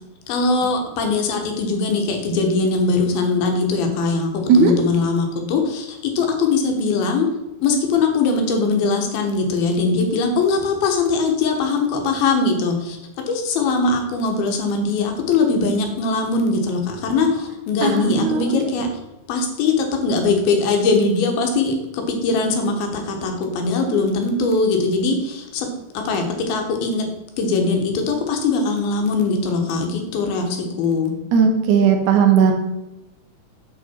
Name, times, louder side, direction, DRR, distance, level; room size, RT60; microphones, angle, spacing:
voice 1, 0.3-7.3 7.6-13.0 13.3-18.9 19.3-25.7 25.9-27.0 27.4-31.1, left 3 dB, 85° left, 3 dB, 3.1 m, -21 dB
voice 2, 17.8-18.4 31.3-32.5, right 6 dB, 70° right, 3 dB, 2.1 m, -16 dB
7.7 x 6.3 x 4.4 m, 0.97 s
omnidirectional pair, 4.2 m